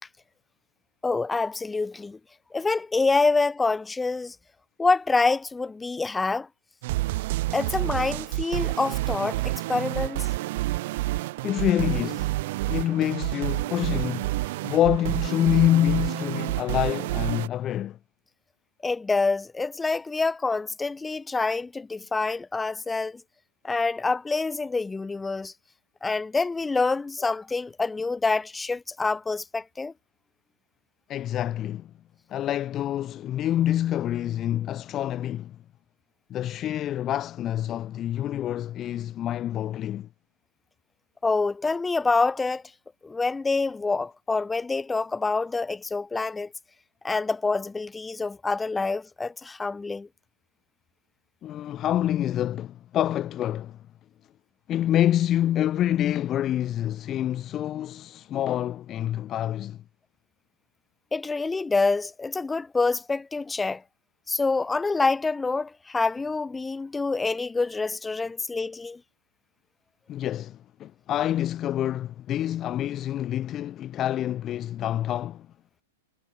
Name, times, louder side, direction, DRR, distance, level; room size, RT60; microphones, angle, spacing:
voice 1, 1.0-2.2 2.5-4.4 4.8-6.5 7.5-10.3 18.8-23.2 23.6-25.5 26.0-29.9 41.2-42.6 43.0-46.5 47.0-50.1 61.1-63.8 64.3-69.0, left 3 dB, 10° left, 4.3 m, -26 dB
sound 1, 6.8-17.5, right 19 dB, 55° right, 3.1 m, -29 dB
voice 2, 11.4-12.3 12.7-14.4 14.6-18.0 31.1-31.9 32.3-35.6 36.3-40.1 51.4-53.8 54.7-59.8 70.1-75.5, left 12 dB, 30° left, 1.5 m, -27 dB
hypercardioid pair, 120°, 0 cm